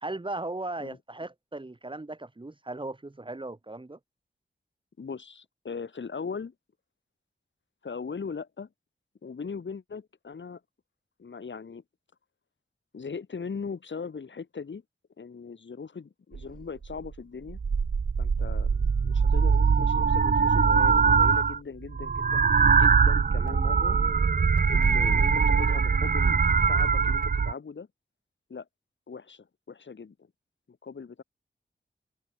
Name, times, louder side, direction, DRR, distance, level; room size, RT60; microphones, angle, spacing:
voice 1, 0.0-4.0, right 2 dB, 25° right, 1.6 m, -37 dB
voice 2, 5.0-6.5 7.8-8.7 9.2-10.6 11.2-11.8 12.9-14.8 15.2-17.6 18.2-24.0 24.7-26.4 26.7-27.9 28.5-28.7 29.1-30.1 30.8-31.2, left 5 dB, 85° left, 5.2 m, -39 dB
sound 1, 16.3-16.4 16.8-17.1 17.5-21.6 21.9-27.5, right 5 dB, 50° right, 0.6 m, -22 dB
wide cardioid pair, 55°, 19 cm